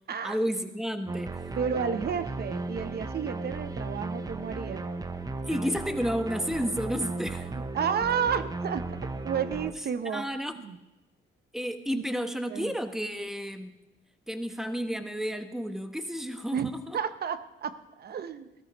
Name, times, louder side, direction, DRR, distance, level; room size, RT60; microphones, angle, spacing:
voice 1, 0.2-1.4 5.4-7.5 10.1-10.6 11.5-13.8 14.3-17.0, equal, ahead, 7 dB, 1.1 m, -31 dB
sound 1, 1.1-9.7, right 3 dB, 20° right, 0.7 m, -35 dB
voice 2, 1.5-4.9 7.5-8.9 9.2-10.2 10.6-10.8 11.9-12.0 12.5-12.7 16.5-18.5, right 7 dB, 55° right, 12 dB, 0.8 m, -31 dB
17.0 x 13.5 x 3.1 m, 1.0 s
cardioid pair, 90°, 20 cm